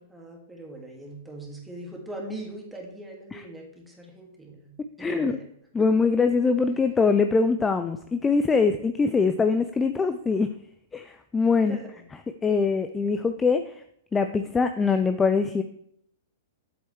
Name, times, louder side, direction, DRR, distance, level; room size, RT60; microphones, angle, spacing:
voice 1, 0.0-4.7 5.0-5.4 11.7-11.9, right 1 dB, 5° right, -1 dB, 2.1 m, -41 dB
voice 2, 5.0-5.4 5.7-10.5 10.9-11.8 12.4-13.8 14.1-15.6, left 4 dB, 15° left, 8 dB, 0.4 m, -23 dB
8.0 x 7.6 x 3.2 m, 0.72 s
hypercardioid pair, 110°, 0 cm